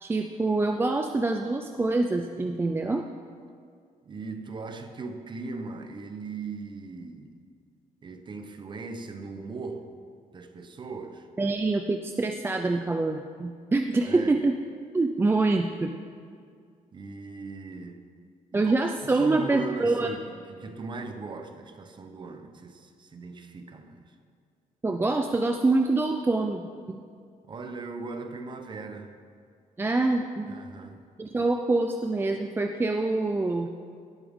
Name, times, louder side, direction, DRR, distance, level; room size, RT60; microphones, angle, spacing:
voice 1, 0.0-3.0 11.4-14.5 14.9-15.9 18.5-20.1 24.8-27.0 29.8-30.6 31.2-33.7, right 3 dB, 15° right, 5 dB, 0.4 m, -25 dB
voice 2, 4.0-7.4 8.0-9.9 10.3-11.3 14.0-14.4 16.9-18.1 18.5-18.7 19.0-24.1 27.5-29.2 30.5-31.0, right 4 dB, 35° right, 7 dB, 0.8 m, -39 dB
17.5 x 8.5 x 3.6 m, 2.1 s
cardioid pair, 155°, 15 cm